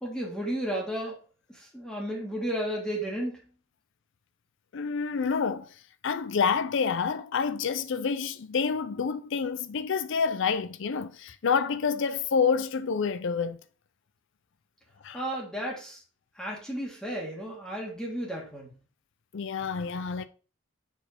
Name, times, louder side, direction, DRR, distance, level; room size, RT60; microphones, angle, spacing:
voice 1, 0.0-1.2 1.5-3.4 15.1-16.0 16.4-18.7, right 1 dB, 5° left, 1.4 m, -33 dB
voice 2, 4.7-5.7 6.0-13.6 15.0-15.2 19.3-20.3, left 5 dB, 65° left, 0.5 m, -28 dB
4.8 x 4.2 x 5.1 m
head